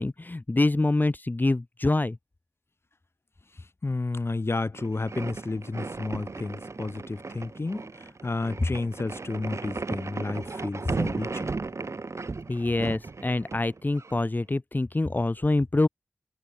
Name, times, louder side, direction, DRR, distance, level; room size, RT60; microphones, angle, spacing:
voice 1, 0.0-2.2 12.5-15.9, left 2 dB, 40° left, 1.3 m, -25 dB
voice 2, 3.8-11.5, left 3 dB, 55° left, 1.9 m, -32 dB
sound 1, 4.7-14.2, right 3 dB, 75° right, 4.0 m, -35 dB
wide cardioid pair, 50°, 5 cm